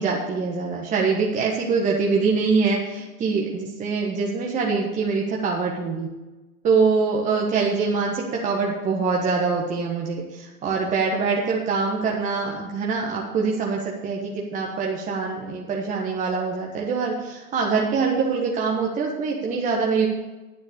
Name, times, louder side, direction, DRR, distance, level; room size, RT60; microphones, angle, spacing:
voice 1, 0.0-6.1 6.6-20.1, right 4 dB, 15° right, -2 dB, 1.3 m, -24 dB
9.6 x 8.3 x 6.8 m, 1.1 s
hypercardioid pair, 115°, 45 cm